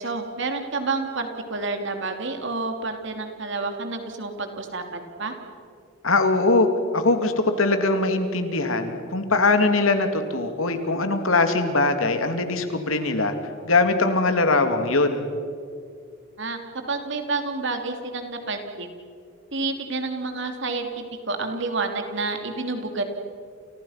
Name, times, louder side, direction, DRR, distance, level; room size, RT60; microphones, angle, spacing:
voice 1, 0.0-5.3 16.4-16.6 16.9-18.9 19.5-23.0, right 3 dB, 60° right, 5 dB, 3.1 m, -29 dB
voice 2, 6.0-6.7 6.9-13.3 13.6-15.2, left 3 dB, 75° left, 7 dB, 2.8 m, -21 dB
30.0 x 29.5 x 5.9 m, 2.4 s
head